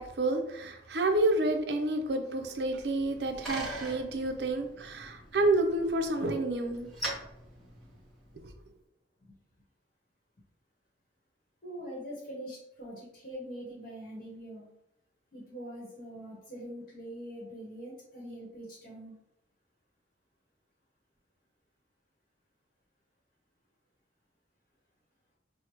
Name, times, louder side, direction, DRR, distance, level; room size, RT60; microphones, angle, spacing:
voice 1, 0.0-6.9, right 2 dB, 60° right, 5 dB, 0.5 m, -29 dB
Bicycle, 2.8-8.5, right 1 dB, ahead, 1.0 m, -43 dB
voice 2, 11.6-14.7 15.3-19.2, equal, 50° left, -4 dB, 1.0 m, -43 dB
4.6 x 2.1 x 2.9 m, 0.81 s
head